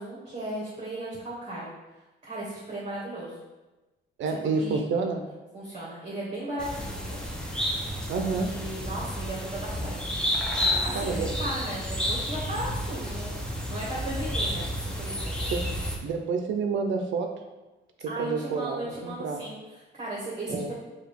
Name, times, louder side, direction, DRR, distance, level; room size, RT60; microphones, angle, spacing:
voice 1, 0.0-1.7 2.2-3.4 4.3-4.8 5.5-7.2 8.3-10.1 10.6-15.5 18.1-20.7, right 1 dB, 30° right, -7 dB, 1.1 m, -36 dB
voice 2, 4.2-5.2 8.1-8.6 10.9-11.3 15.5-15.6 16.0-17.3 18.2-19.4 20.5-20.7, right 4 dB, 70° right, 4 dB, 0.5 m, -29 dB
sound 1, 6.6-16.0, equal, 5° left, 0.6 m, -31 dB
4.6 x 2.4 x 3.4 m, 1.1 s
cardioid pair, 90°, 20 cm